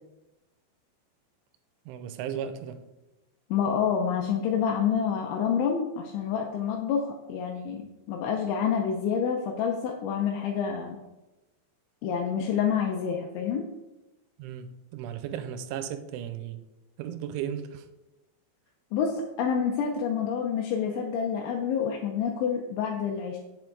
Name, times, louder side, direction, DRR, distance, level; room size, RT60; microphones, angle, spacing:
voice 1, 1.9-2.8 14.4-16.6 17.0-17.9, right 9 dB, 85° right, 3.1 m, -35 dB
voice 2, 3.5-11.0 12.0-13.7 18.9-23.4, left 7 dB, 85° left, 3.1 m, -28 dB
7.6 x 7.2 x 4.6 m
omnidirectional pair, 5.4 m